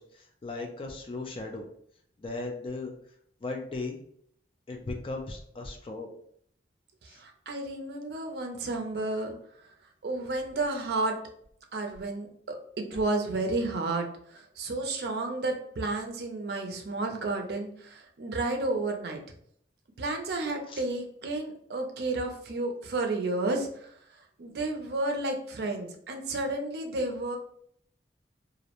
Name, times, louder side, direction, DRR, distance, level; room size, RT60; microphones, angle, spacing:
voice 1, 0.0-1.7 2.2-2.9 3.4-4.0 4.7-6.1 7.1-7.2 20.7-20.8, left 3 dB, 30° left, 3 dB, 0.3 m, -37 dB
voice 2, 7.0-9.3 10.0-11.2 11.7-12.6 12.9-14.0 14.3-19.2 20.0-23.9 24.4-27.4, right 2 dB, 60° right, 3 dB, 0.4 m, -31 dB
2.4 x 2.0 x 2.8 m, 0.64 s
head